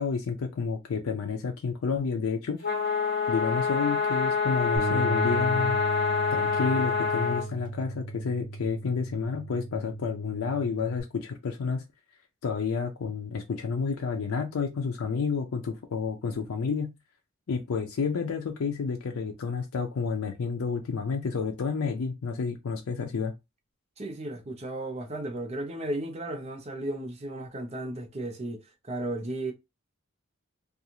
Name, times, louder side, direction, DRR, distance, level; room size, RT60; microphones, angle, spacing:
voice 1, 0.0-2.6 3.3-5.8 6.3-11.8 12.4-16.9 17.5-23.3, left 5 dB, 85° left, 0.4 m, -30 dB
sound 1, 2.6-7.5, left 5 dB, 55° left, 1.2 m, -26 dB
Bass guitar, 4.8-11.0, right 3 dB, 65° right, 0.7 m, -37 dB
voice 2, 24.0-29.5, right 1 dB, 30° right, 0.6 m, -34 dB
2.5 x 2.3 x 2.8 m
head